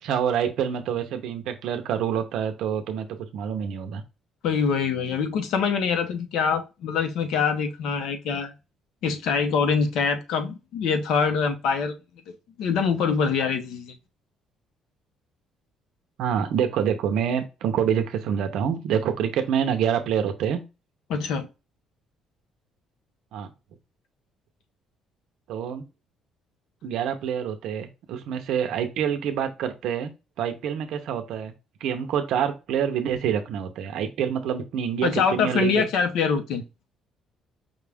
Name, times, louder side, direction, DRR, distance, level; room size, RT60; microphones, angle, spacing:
voice 1, 0.0-4.0 16.2-20.6 23.3-23.5 25.5-25.8 26.8-30.1 30.4-31.5 31.8-35.9, right 8 dB, 65° right, 0.7 m, -26 dB
voice 2, 4.4-8.5 9.0-12.0 12.6-14.0 21.1-21.5 35.0-36.6, left 6 dB, 70° left, 0.8 m, -24 dB
5.3 x 2.4 x 3.4 m
cardioid pair, 180°, 0 cm